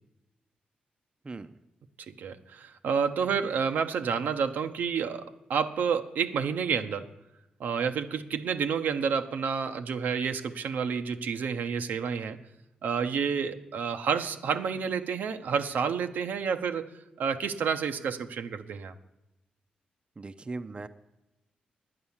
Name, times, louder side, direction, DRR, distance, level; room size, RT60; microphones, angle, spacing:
voice 1, 2.1-7.1 7.6-12.4 12.8-16.9 17.2-18.9, right 6 dB, 80° right, 7 dB, 0.8 m, -29 dB
voice 2, 20.2-20.9, right 3 dB, 35° right, 10 dB, 0.6 m, -38 dB
9.8 x 9.5 x 7.2 m, 0.93 s
cardioid pair, 65°, 3 cm